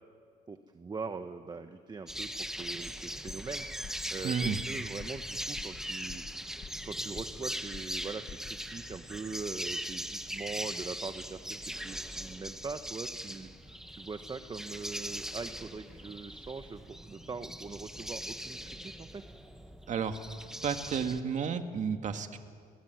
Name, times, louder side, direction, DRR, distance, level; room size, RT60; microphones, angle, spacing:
voice 1, 0.5-3.7 4.1-6.6 6.8-19.2, right 4 dB, 25° right, 8 dB, 1.3 m, -42 dB
sound 1, 2.1-21.2, equal, 5° right, 1.6 m, -40 dB
sound 2, 3.3-3.6 3.8-4.1 4.4-4.7 5.0-5.3 5.6-5.8 6.1-6.9 7.2-7.5 7.7-8.0 8.3-8.6, left 7 dB, 40° left, 1.7 m, -46 dB
voice 2, 4.2-4.6 19.9-20.2 20.6-22.4, right 6 dB, 45° right, 7 dB, 2.1 m, -32 dB
30.0 x 21.0 x 9.5 m, 2.1 s
cardioid pair, 110°, 17 cm